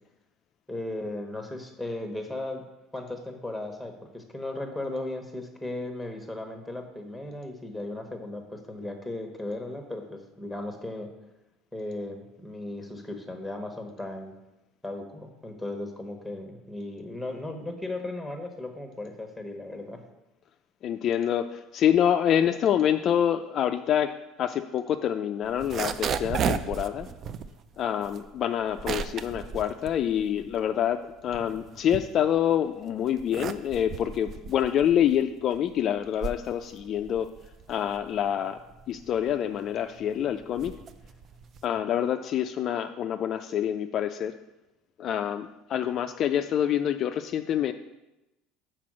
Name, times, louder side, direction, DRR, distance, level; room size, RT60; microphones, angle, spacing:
voice 1, 0.7-2.6 2.9-11.1 11.7-14.3 14.8-20.0, left 2 dB, ahead, 4 dB, 1.1 m, -36 dB
voice 2, 20.8-24.1 24.4-27.1 27.8-37.3 37.7-38.6 38.9-40.7 41.6-44.4 45.0-47.7, left 10 dB, 45° left, 8 dB, 0.3 m, -26 dB
sound 1, 25.4-30.8 31.1-32.6 33.0-41.8, right 6 dB, 40° right, 0.4 m, -35 dB
5.9 x 4.6 x 6.1 m, 0.97 s
cardioid pair, 130°, 0 cm